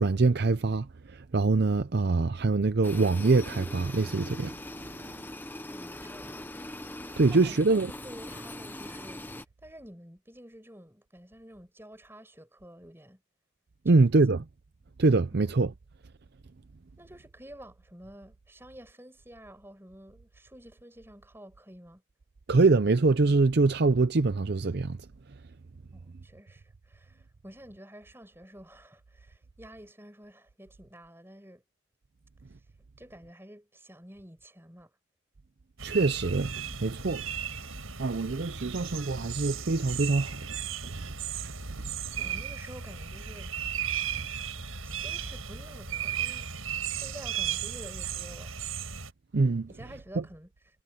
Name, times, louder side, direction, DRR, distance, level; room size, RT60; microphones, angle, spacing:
voice 1, 0.0-4.5 7.2-7.9 13.8-14.4 15.0-15.7 22.5-25.0 35.8-37.2 38.0-40.5 40.8-41.1 41.4-41.5 49.3-49.7, right 3 dB, 50° right, 0.5 m, -24 dB
sound 1, 2.8-9.4, left 1 dB, 10° left, 0.9 m, -41 dB
voice 2, 5.7-6.5 7.3-9.3 9.6-13.2 13.9-14.1 15.3-15.6 17.0-22.0 25.9-31.6 33.0-34.9 42.1-43.6 44.8-46.6 46.9-48.5 49.7-50.5, equal, 10° right, 6.1 m, -50 dB
sound 2, 35.8-49.1, right 8 dB, 80° right, 7.1 m, -35 dB
head